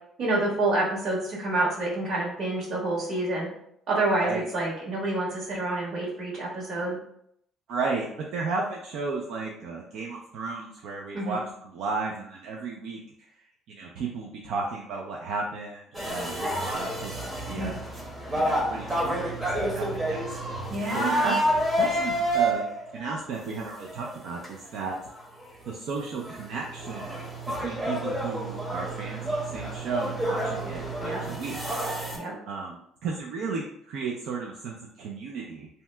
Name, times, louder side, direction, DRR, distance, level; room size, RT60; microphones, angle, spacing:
voice 1, 0.2-3.5 3.9-7.0 11.1-11.4 17.5-17.7 20.7-21.4 31.0-31.2 32.1-32.3, right 2 dB, 55° right, -5 dB, 1.4 m, -28 dB
voice 2, 7.7-13.3 13.7-17.7 18.3-20.2 20.6-21.4 21.8-22.6 22.9-25.0 25.7-27.3 27.6-31.6 32.5-35.7, right 4 dB, 75° right, -1 dB, 0.4 m, -34 dB
sound 1, 15.9-23.2 23.9-24.1 24.4-24.5 25.2-25.3 25.7-25.8 26.0-32.2, right 1 dB, 20° right, 0.8 m, -29 dB
2.8 x 2.2 x 3.2 m, 0.72 s
cardioid pair, 115°, 0 cm